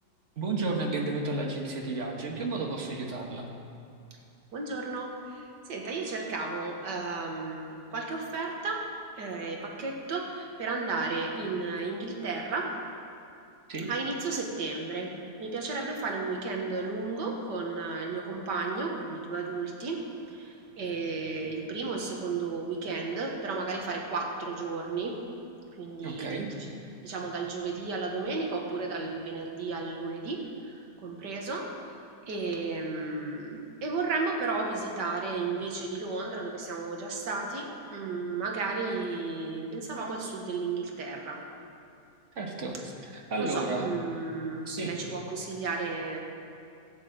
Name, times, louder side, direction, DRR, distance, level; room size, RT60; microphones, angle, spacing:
voice 1, 0.4-3.5 13.7-13.9 26.0-26.5 42.3-42.8 43.1-43.9 44.7-45.0, right 3 dB, 45° right, 1 dB, 1.6 m, -32 dB
voice 2, 4.5-12.8 13.9-25.2 25.7-26.7 27.0-31.8 32.3-41.5 43.2-46.2, right 3 dB, 80° right, 1 dB, 2.1 m, -33 dB
12.5 x 8.4 x 7.7 m, 2.5 s
omnidirectional pair, 1.8 m